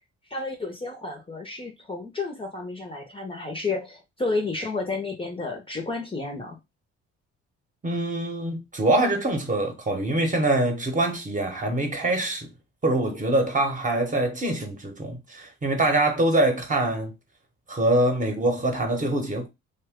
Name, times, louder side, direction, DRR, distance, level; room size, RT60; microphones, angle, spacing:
voice 1, 0.3-6.6, left 3 dB, 20° left, 0.6 m, -31 dB
voice 2, 7.8-12.5 12.8-17.1 17.7-19.5, right 1 dB, 25° right, 0.9 m, -24 dB
2.8 x 2.2 x 3.5 m
cardioid pair, 90°, 30 cm